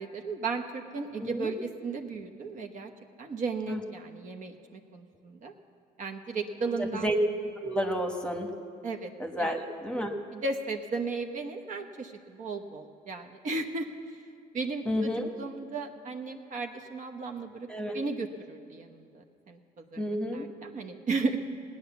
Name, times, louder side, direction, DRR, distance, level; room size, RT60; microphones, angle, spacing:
voice 1, 0.0-2.9 3.2-5.5 6.0-7.1 8.8-9.1 9.4-9.5 10.3-13.9 14.5-17.7 17.9-20.0 20.3-21.4, right 4 dB, 50° right, 4 dB, 1.1 m, -35 dB
voice 2, 1.2-1.5 3.7-3.8 6.6-7.2 7.6-8.5 9.2-10.1 14.9-15.3 17.7-18.0 20.0-20.5, equal, 5° left, 4 dB, 1.1 m, -31 dB
17.0 x 9.6 x 7.0 m, 2.4 s
cardioid pair, 110°, 17 cm